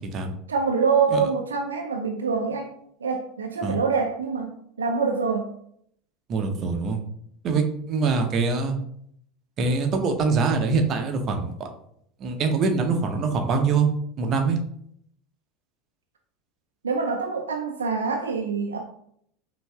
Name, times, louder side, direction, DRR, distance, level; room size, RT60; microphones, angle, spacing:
voice 1, 0.5-2.7 3.0-4.5 4.8-5.5 16.8-18.8, right 5 dB, 75° right, 2 dB, 0.4 m, -25 dB
voice 2, 6.3-7.0 7.4-8.8 9.6-11.7 12.2-13.9 14.2-14.6, right 4 dB, 40° right, 4 dB, 0.6 m, -24 dB
5.3 x 2.5 x 2.3 m, 0.69 s
figure-of-eight pair, 75°, 0 cm